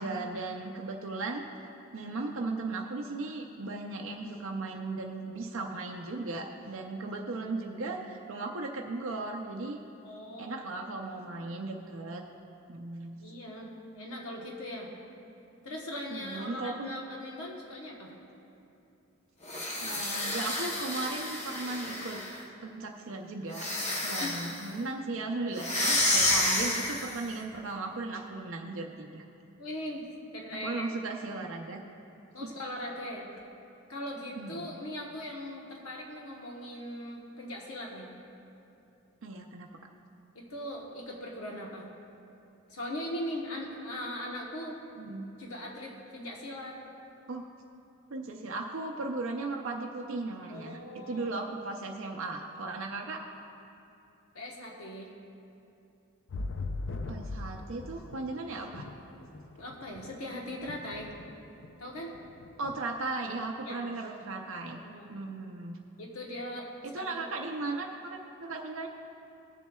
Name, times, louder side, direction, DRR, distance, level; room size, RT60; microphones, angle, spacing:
voice 1, 0.0-1.4 1.9-9.8 10.4-12.2 12.7-13.2 16.1-17.0 19.8-22.2 22.6-23.7 24.0-29.2 30.5-31.8 32.4-32.5 34.4-34.8 39.2-39.7 45.0-45.3 47.3-47.4 48.1-50.8 51.1-53.2 57.1-58.8 62.6-64.8 65.1-65.8 66.8-68.9, right 3 dB, 65° right, 1 dB, 0.5 m, -36 dB
voice 2, 10.0-10.6 11.3-11.4 13.2-14.9 15.6-18.1 24.2-24.4 29.6-30.0 30.3-30.9 32.3-33.3 33.9-38.1 40.3-41.9 42.7-44.8 45.4-46.8 50.5-51.3 54.3-55.1 59.6-61.1 61.8-62.1 63.7-63.9 64.7-65.2 66.0-67.2, left 1 dB, 80° left, -1 dB, 1.1 m, -40 dB
sound 1, 19.4-22.4 23.5-24.7 25.6-27.3, left 1 dB, 30° left, 0.8 m, -30 dB
sound 2, 56.3-60.3 60.6-61.7 62.0-62.8 63.1-63.2, left 2 dB, 60° left, 0.5 m, -40 dB
20.0 x 7.2 x 2.3 m, 2.8 s
head